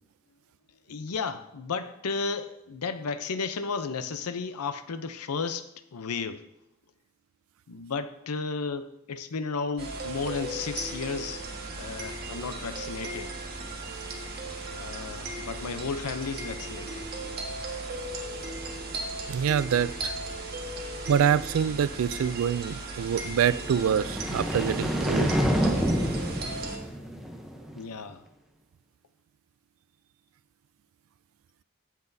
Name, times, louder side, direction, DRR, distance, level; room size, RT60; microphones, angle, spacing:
voice 1, 0.9-6.4 7.7-11.4 11.7-13.3 14.7-17.4 27.8-28.2, left 4 dB, 85° left, 11 dB, 0.6 m, -33 dB
sound 1, 9.8-26.8, right 2 dB, 45° right, 1.4 m, -37 dB
voice 2, 19.3-20.1 21.1-25.3, right 8 dB, 70° right, 17 dB, 0.3 m, -25 dB
sound 2, 23.5-27.8, equal, ahead, 0.7 m, -28 dB
15.5 x 6.0 x 2.7 m, 0.83 s
head